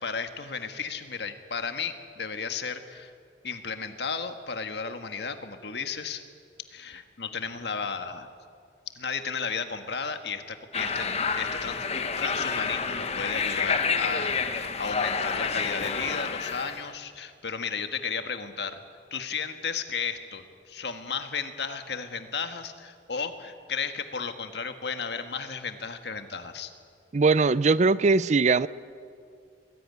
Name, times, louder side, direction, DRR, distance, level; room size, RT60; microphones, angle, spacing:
voice 1, 0.0-3.1 3.4-6.2 6.7-8.3 8.9-18.8 19.1-26.7, left 5 dB, 70° left, 8 dB, 1.6 m, -34 dB
sound 1, 10.7-16.9, left 5 dB, 35° left, 1.2 m, -29 dB
voice 2, 27.1-28.7, right 4 dB, 40° right, 18 dB, 0.5 m, -21 dB
22.5 x 16.5 x 9.7 m, 2.3 s
head